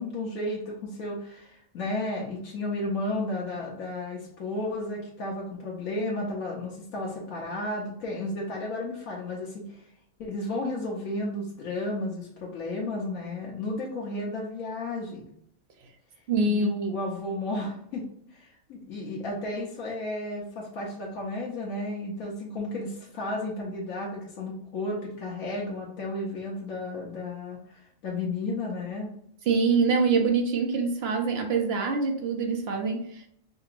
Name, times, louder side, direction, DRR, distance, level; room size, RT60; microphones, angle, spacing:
voice 1, 0.0-9.9 10.2-15.2 16.5-18.0 18.3-29.1, left 2 dB, 80° left, -4 dB, 1.2 m, -33 dB
voice 2, 16.3-16.7 29.5-33.3, right 4 dB, 55° right, 3 dB, 0.9 m, -25 dB
5.2 x 2.9 x 2.5 m, 0.70 s
omnidirectional pair, 1.4 m